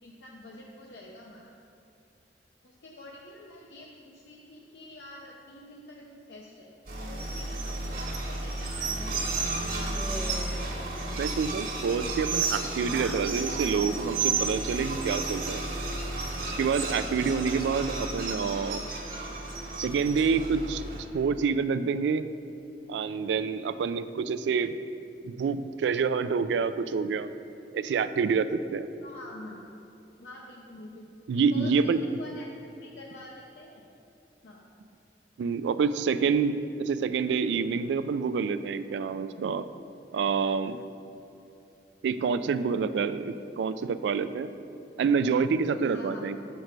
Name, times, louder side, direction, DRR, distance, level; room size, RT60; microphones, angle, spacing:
voice 1, 0.0-1.5 2.6-9.7 29.0-29.7 30.2-32.5 32.8-33.9 34.4-34.6 45.7-46.4, left 1 dB, 75° left, -2 dB, 0.6 m, -47 dB
sound 1, 6.9-21.0, right 3 dB, 55° right, 1.2 m, -32 dB
sound 2, 9.9-10.8 11.1-11.6 12.8-13.3, equal, 5° left, 0.3 m, -41 dB
voice 2, 11.2-15.6 16.6-18.8 19.8-22.3 22.9-24.8 25.2-27.3 27.7-28.9 31.3-32.0 35.4-39.7 40.1-40.8 42.0-44.5 45.0-46.4, right 5 dB, 80° right, 12 dB, 0.3 m, -27 dB
6.5 x 4.6 x 5.2 m, 2.8 s
head